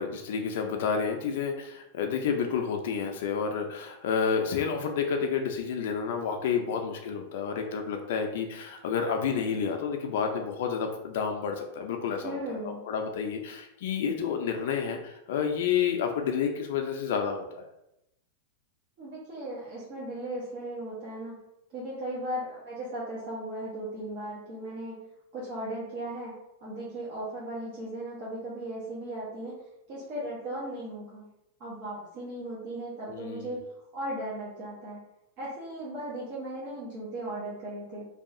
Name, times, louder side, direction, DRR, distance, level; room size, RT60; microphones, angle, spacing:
voice 1, 0.0-17.7 33.1-33.5, left 6 dB, 70° left, 3 dB, 0.3 m, -30 dB
voice 2, 12.2-12.8 19.0-21.4 21.7-25.1 25.3-29.5 29.9-31.3 31.6-33.6 33.9-35.0 35.4-38.0, right 1 dB, 50° right, -7 dB, 0.8 m, -37 dB
2.7 x 2.3 x 2.5 m, 0.85 s
supercardioid pair, 130°, 0 cm